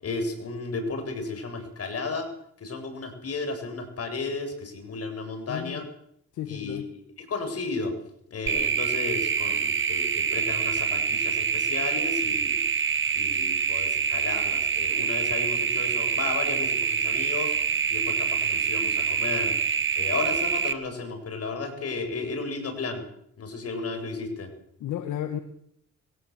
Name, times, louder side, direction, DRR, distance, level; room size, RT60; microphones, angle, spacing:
voice 1, 0.0-2.3 2.6-5.9 6.5-6.8 7.2-7.9 8.3-12.6 13.1-17.5 17.9-19.5 20.0-23.0 23.4-24.5, left 3 dB, 50° left, 6 dB, 7.3 m, -33 dB
voice 2, 5.5-5.8 6.3-6.8 24.8-25.4, left 10 dB, 80° left, 8 dB, 1.7 m, -32 dB
sound 1, 8.5-20.7, right 6 dB, 40° right, 1.8 m, -26 dB
22.0 x 17.5 x 8.0 m, 0.70 s
cardioid pair, 90°, 30 cm